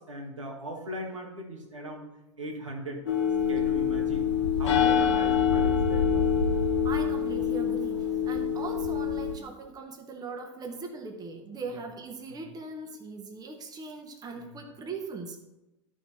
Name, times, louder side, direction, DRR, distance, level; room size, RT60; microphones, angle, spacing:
voice 1, 0.0-2.0 2.4-3.2 3.5-4.3 4.6-6.3 12.3-12.4 14.4-14.5, equal, 90° right, 0 dB, 1.9 m, -39 dB
sound 1, 3.1-9.3, left 7 dB, 70° left, 1.2 m, -25 dB
voice 2, 4.8-5.2 6.8-15.4, right 4 dB, 25° right, 4 dB, 1.4 m, -40 dB
12.5 x 4.9 x 4.2 m, 0.97 s
hypercardioid pair, 90°, 16 cm